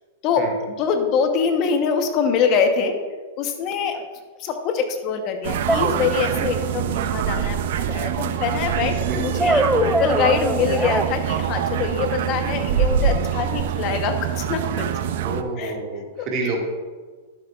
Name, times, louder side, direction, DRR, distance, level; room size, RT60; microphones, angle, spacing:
voice 1, 0.2-3.0 3.4-4.0 4.4-14.9 15.6-15.7 16.2-16.3, left 6 dB, 40° left, 6 dB, 1.0 m, -24 dB
sound 1, 3.9-4.0 5.7-6.6 9.4-11.1, right 1 dB, 5° right, 0.3 m, -23 dB
sound 2, 5.4-15.4, right 9 dB, 65° right, 0.5 m, -24 dB
voice 2, 9.0-9.5 15.2-16.6, right 2 dB, 40° right, -1 dB, 2.1 m, -29 dB
11.5 x 7.8 x 2.5 m, 1.4 s
hypercardioid pair, 125°, 0 cm